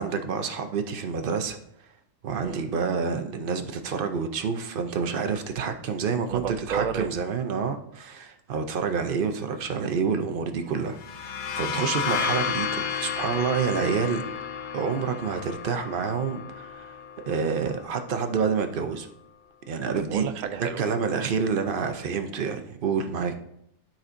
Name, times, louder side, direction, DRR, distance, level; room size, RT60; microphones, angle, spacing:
voice 1, 0.0-1.6 2.2-14.2 14.7-19.1 19.7-20.3 20.8-23.3, right 6 dB, 50° right, 7 dB, 0.7 m, -28 dB
voice 2, 6.3-7.1 20.0-20.8, right 7 dB, 90° right, 9 dB, 0.4 m, -31 dB
sound 1, 10.9-18.4, left 7 dB, 60° left, 0.5 m, -32 dB
12.5 x 4.3 x 2.6 m, 0.75 s
omnidirectional pair, 1.4 m